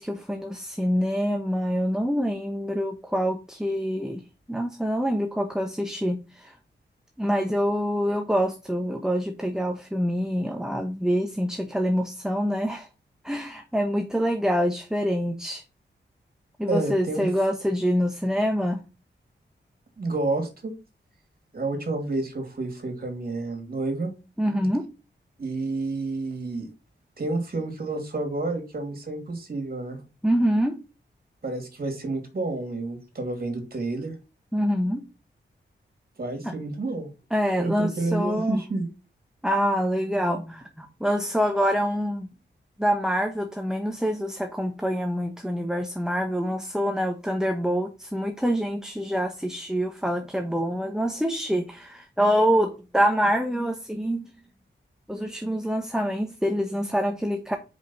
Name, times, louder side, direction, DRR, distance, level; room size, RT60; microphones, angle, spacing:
voice 1, 0.0-4.2 4.5-6.6 7.2-12.9 13.2-15.6 16.6-18.8 24.4-24.9 30.2-30.8 34.5-35.0 36.4-36.5 37.3-38.6 39.4-42.3 42.8-54.2 55.1-57.6, equal, 5° right, 5 dB, 1.0 m, -26 dB
voice 2, 16.7-17.2 20.0-20.7 21.5-24.1 24.5-24.7 25.4-26.7 27.2-30.0 31.4-34.2 36.2-37.1 37.6-38.9, right 2 dB, 50° right, 4 dB, 2.8 m, -29 dB
5.2 x 5.1 x 5.7 m, 0.31 s
wide cardioid pair, 80°, 19 cm